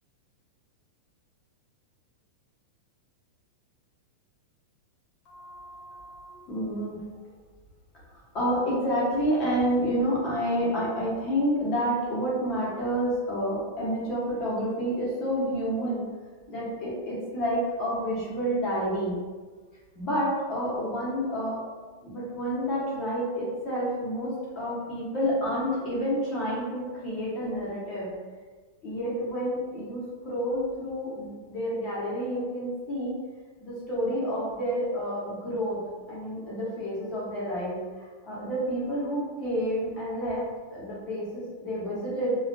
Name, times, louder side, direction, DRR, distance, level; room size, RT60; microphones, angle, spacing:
voice 1, 5.3-7.0 8.1-16.1 16.5-19.2 19.9-21.6 22.0-28.1 28.8-33.2 33.6-35.8 36.1-40.4 40.7-42.4, equal, 30° left, -7 dB, 0.9 m, -29 dB
2.4 x 2.2 x 2.5 m, 1.4 s
supercardioid pair, 155°, 0 cm